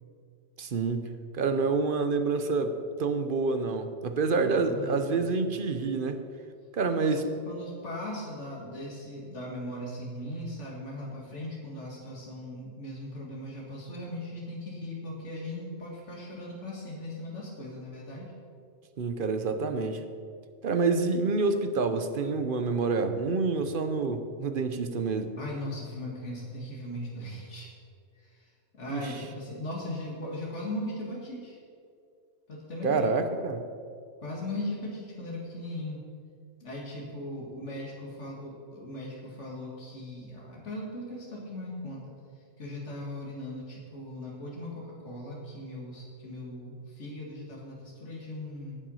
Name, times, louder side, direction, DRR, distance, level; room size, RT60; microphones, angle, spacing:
voice 1, 0.6-6.2 6.7-7.3 19.0-20.0 20.6-25.3 28.9-29.1 32.8-33.6, right 4 dB, 55° right, 9 dB, 0.9 m, -28 dB
voice 2, 4.3-5.2 6.9-18.3 25.4-27.7 28.2-28.5 28.8-31.6 32.5-33.1 34.2-36.0 36.6-42.1 42.6-48.8, left 1 dB, 85° left, -3 dB, 2.3 m, -38 dB
17.5 x 5.9 x 5.5 m, 2.3 s
omnidirectional pair, 1.2 m